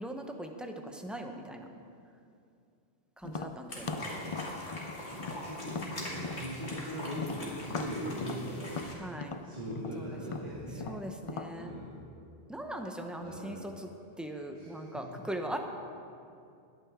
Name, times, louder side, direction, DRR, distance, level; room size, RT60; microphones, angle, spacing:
voice 1, 0.0-1.7 3.2-3.9 9.0-9.4 10.0-10.6 10.8-11.7 12.5-13.9 14.2-15.6, right 1 dB, ahead, 3 dB, 0.7 m, -40 dB
Tap, 3.2-6.9 7.2-11.5, left 4 dB, 45° left, 0.4 m, -40 dB
sound 1, 3.7-8.9, left 1 dB, 80° left, 2.5 m, -42 dB
voice 2, 3.7-4.5 5.0-8.8 9.4-10.9 11.5-12.0 13.2-13.6 14.5-15.0, equal, 45° right, -10 dB, 2.5 m, -40 dB
21.0 x 9.0 x 3.7 m, 2.5 s
omnidirectional pair, 1.1 m